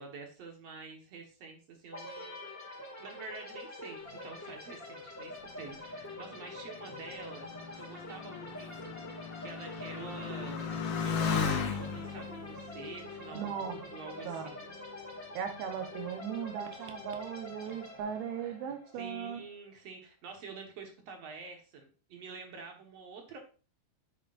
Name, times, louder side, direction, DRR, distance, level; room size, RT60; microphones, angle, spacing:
voice 1, 0.0-7.5 7.7-10.6 11.0-14.8 18.4-18.6 18.9-23.4, right 4 dB, 55° right, 3 dB, 2.1 m, -48 dB
sound 1, 1.9-19.5, left 2 dB, 10° left, 0.8 m, -46 dB
Motorcycle, 5.4-14.4 15.2-15.7, left 6 dB, 80° left, 3.5 m, -37 dB
voice 2, 13.3-13.8 14.3-14.4 15.3-19.4, right 8 dB, 90° right, 5 dB, 3.1 m, -38 dB
9.6 x 8.4 x 2.6 m, 0.35 s
omnidirectional pair, 4.3 m